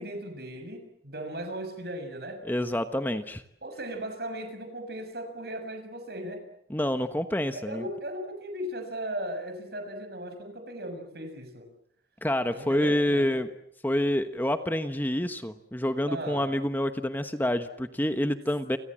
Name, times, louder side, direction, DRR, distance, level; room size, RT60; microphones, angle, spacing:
voice 1, 0.0-2.4 3.6-6.4 7.5-11.7 12.5-13.4 16.1-16.5, right 1 dB, 65° right, 7 dB, 6.5 m, -37 dB
voice 2, 2.5-3.4 6.7-7.8 12.2-13.5 13.8-18.8, left 1 dB, 10° left, 9 dB, 1.1 m, -27 dB
30.0 x 26.0 x 7.6 m, 0.74 s
head